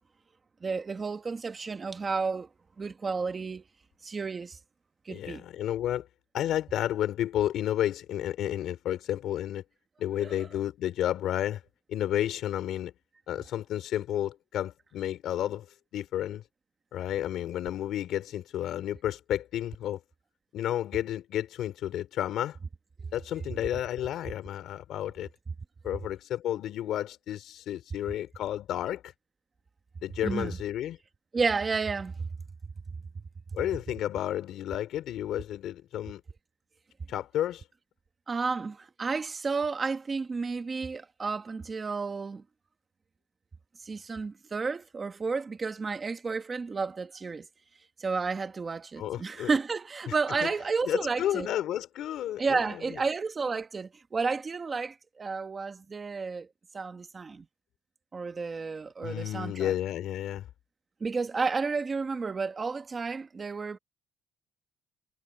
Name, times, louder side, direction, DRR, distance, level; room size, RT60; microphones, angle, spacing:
voice 1, 0.6-2.5 2.8-3.6 4.0-4.6 5.0-5.4 10.2-10.3 23.0-23.1 30.2-30.6 31.3-32.3 33.5-33.6 38.3-42.4 43.8-47.5 48.0-51.5 52.4-56.5 56.7-57.5 58.1-59.7 61.0-63.8, right 4 dB, 20° right, 1.5 m, -31 dB
voice 2, 5.1-6.1 6.3-9.6 10.0-11.6 11.9-12.9 13.3-15.7 15.9-16.4 16.9-20.0 20.5-22.6 23.1-25.3 25.8-29.1 30.0-31.0 33.5-36.2 37.1-37.6 49.0-49.5 50.1-50.2 50.4-50.5 50.9-52.8 59.0-60.5, left 12 dB, 60° left, 3.4 m, -31 dB
cardioid pair, 170°, 0 cm